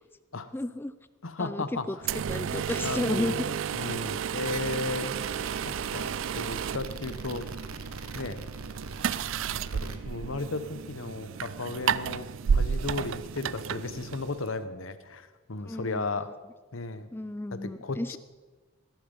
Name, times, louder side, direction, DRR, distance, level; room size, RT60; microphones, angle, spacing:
voice 1, 0.5-0.9 1.4-2.0 2.3-3.6 15.7-16.1 17.1-18.2, left 1 dB, 10° left, 14 dB, 0.4 m, -32 dB
voice 2, 1.2-2.0 2.8-3.4 3.7-5.1 5.9-7.4 8.1-8.4 9.5-16.3 16.7-17.1 17.5-18.2, left 3 dB, 70° left, 12 dB, 1.0 m, -35 dB
sound 1, 2.0-14.6, right 7 dB, 65° right, 0.4 m, -32 dB
sound 2, 4.4-10.0, right 4 dB, 85° right, 1.0 m, -41 dB
17.0 x 10.5 x 5.4 m, 1.3 s
head